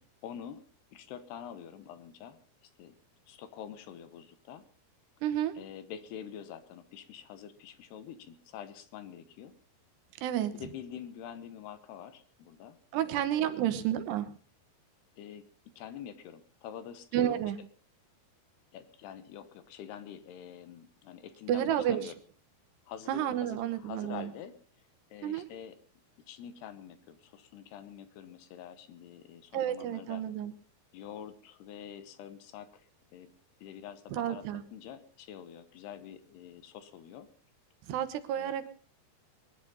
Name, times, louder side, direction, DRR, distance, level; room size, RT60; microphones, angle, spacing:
voice 1, 0.2-0.6 0.9-3.0 3.3-4.6 5.6-9.5 10.4-13.4 13.7-13.8 15.2-17.5 18.7-22.1 22.9-24.6 25.1-25.8 26.3-30.2 30.9-33.3 33.6-37.3 38.4-38.5, left 9 dB, 80° left, 12 dB, 3.2 m, -46 dB
voice 2, 5.2-5.6 10.2-10.5 12.9-14.3 17.1-17.6 21.5-22.1 23.1-24.3 25.2-25.5 29.5-30.5 34.1-34.6 37.9-38.7, right 11 dB, 85° right, 10 dB, 3.4 m, -30 dB
21.5 x 11.0 x 5.5 m, 0.42 s
omnidirectional pair, 4.7 m